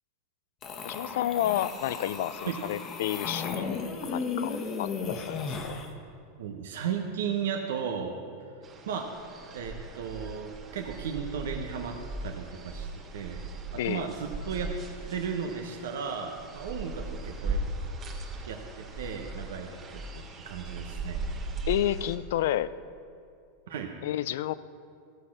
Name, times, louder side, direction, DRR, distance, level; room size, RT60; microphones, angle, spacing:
sound 1, 0.6-5.9, left 5 dB, 35° left, 1.1 m, -35 dB
voice 1, 0.8-3.8 4.1-5.8 13.8-14.1 19.7-19.8 21.7-22.7 24.0-24.5, left 12 dB, 70° left, 17 dB, 0.4 m, -30 dB
voice 2, 6.4-8.1 8.9-9.1 9.5-11.9 12.2-13.4 13.8-14.7 15.1-17.6 18.5-21.2 23.7-23.9, right 7 dB, 80° right, 2 dB, 0.9 m, -35 dB
sound 2, 8.6-22.2, right 2 dB, 30° right, 1.5 m, -38 dB
14.0 x 6.6 x 5.9 m, 2.4 s
supercardioid pair, 130°, 0 cm